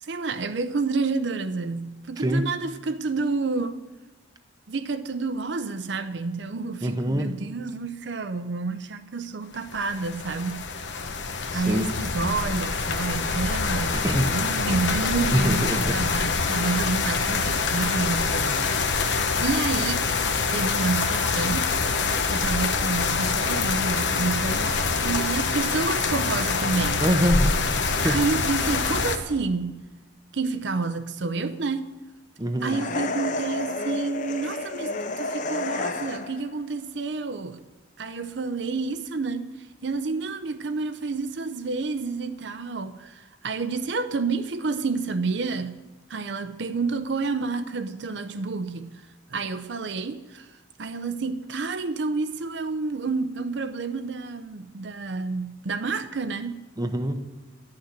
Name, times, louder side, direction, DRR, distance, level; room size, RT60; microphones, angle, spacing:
voice 1, 0.0-3.8 4.7-10.7 11.5-21.7 22.3-27.0 28.0-29.8 30.3-31.9 32.6-37.6 38.0-45.8 46.1-56.6, right 4 dB, 60° right, 0.6 m, -29 dB
voice 2, 2.2-2.5 6.8-7.3 11.5-11.9 13.9-14.3 15.3-16.0 27.0-27.6 28.0-28.2 32.4-32.8 56.8-57.2, equal, 20° right, 0.7 m, -24 dB
sound 1, 9.7-29.2, left 4 dB, 65° left, 1.0 m, -25 dB
sound 2, 32.6-36.5, left 2 dB, 40° left, 0.7 m, -30 dB
11.5 x 6.6 x 9.5 m
head